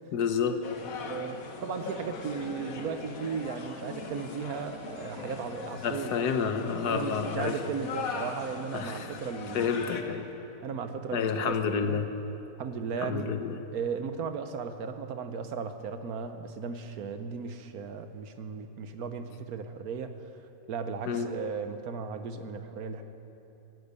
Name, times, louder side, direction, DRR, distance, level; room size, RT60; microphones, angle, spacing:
voice 1, 0.1-1.1 5.8-7.6 8.7-9.2 9.5-10.3 11.1-12.1 13.0-13.6 21.1-21.3, left 6 dB, 90° left, 8 dB, 1.5 m, -30 dB
sound 1, 0.6-10.0, left 4 dB, 65° left, 1.5 m, -40 dB
voice 2, 1.0-6.1 6.9-10.0 10.6-12.0 12.6-13.3 13.7-20.1 20.7-23.0, right 5 dB, 70° right, 9 dB, 1.3 m, -36 dB
14.5 x 12.0 x 8.4 m, 3.0 s
omnidirectional pair, 1.7 m